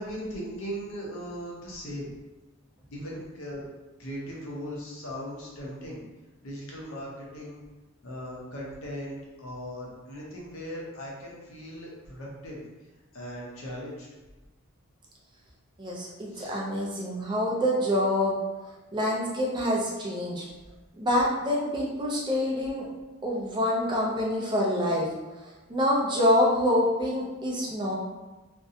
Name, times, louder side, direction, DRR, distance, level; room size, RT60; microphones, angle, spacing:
voice 1, 0.0-2.1 2.9-3.6 4.0-6.0 6.4-7.6 8.0-12.6 13.1-14.1 16.3-16.6, equal, 80° left, -3 dB, 0.7 m, -38 dB
voice 2, 15.8-18.4 18.9-20.5 21.0-22.9 23.2-25.1 25.7-28.0, left 1 dB, 20° right, -4 dB, 0.4 m, -26 dB
2.6 x 2.1 x 2.6 m, 1.1 s
head